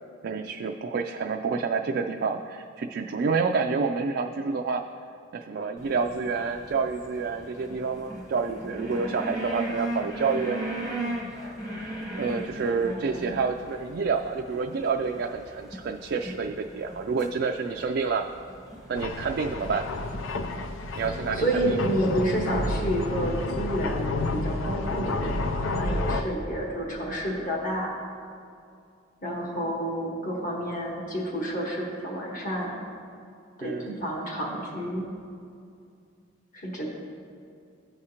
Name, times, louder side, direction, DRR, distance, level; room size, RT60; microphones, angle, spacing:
voice 1, 0.2-4.8 5.3-10.6 12.1-18.2 18.9-19.8 21.0-21.8 33.6-33.9, right 5 dB, 55° right, 3 dB, 0.3 m, -28 dB
sound 1, 5.8-22.9, right 1 dB, 15° left, 1.2 m, -38 dB
voice 2, 12.8-13.4 21.1-27.9 29.2-32.8 33.6-35.0 36.5-36.9, right 1 dB, 45° left, -3 dB, 1.3 m, -30 dB
sound 2, 19.0-26.2, left 2 dB, 85° left, 0.5 m, -30 dB
14.5 x 4.9 x 2.9 m, 2.4 s
head